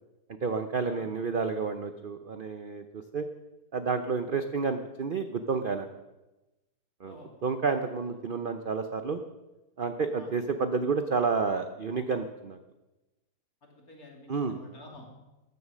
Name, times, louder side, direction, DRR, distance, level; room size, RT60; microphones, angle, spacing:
voice 1, 0.4-3.3 3.7-5.9 7.0-7.2 7.4-9.2 9.8-12.6 14.3-14.6, right 5 dB, 55° right, 8 dB, 0.6 m, -30 dB
voice 2, 13.6-15.2, left 1 dB, 55° left, 0 dB, 3.3 m, -49 dB
14.0 x 10.5 x 6.3 m, 1.1 s
omnidirectional pair, 1.8 m